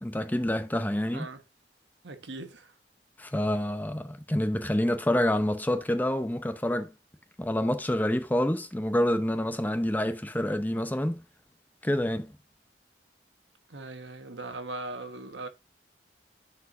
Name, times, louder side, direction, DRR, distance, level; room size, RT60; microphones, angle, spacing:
voice 1, 0.0-1.3 3.2-6.9 7.4-11.2 11.8-12.3, left 1 dB, 10° left, 0.7 m, -27 dB
voice 2, 2.0-2.7 13.7-15.5, right 2 dB, 85° right, 1.3 m, -39 dB
10.0 x 4.8 x 2.6 m
head